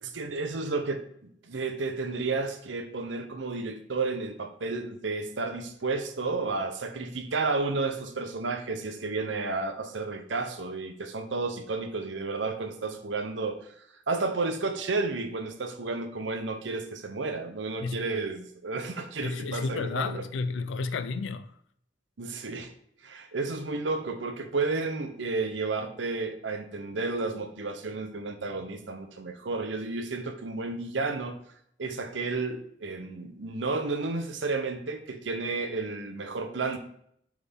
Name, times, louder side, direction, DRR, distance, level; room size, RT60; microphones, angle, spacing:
voice 1, 0.0-1.0 1.4-13.6 14.1-20.2 22.2-22.7 23.0-31.4 31.8-36.8, right 3 dB, 80° right, 0.8 m, -32 dB
voice 2, 19.2-21.5, left 4 dB, 80° left, 0.4 m, -32 dB
8.0 x 3.8 x 3.6 m
head